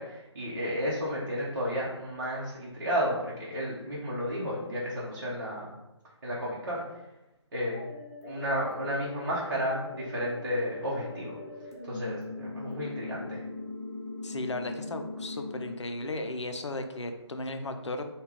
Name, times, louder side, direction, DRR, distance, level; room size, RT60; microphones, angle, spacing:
voice 1, 0.0-5.7 6.2-6.8 7.5-7.8 8.2-11.4 11.8-13.4, equal, 45° right, -7 dB, 0.9 m, -32 dB
sound 1, 7.7-15.7, left 2 dB, 30° left, 0.7 m, -41 dB
voice 2, 14.2-18.0, left 2 dB, 75° left, 6 dB, 0.5 m, -35 dB
3.4 x 2.3 x 3.5 m, 0.96 s
figure-of-eight pair, 145°, 15 cm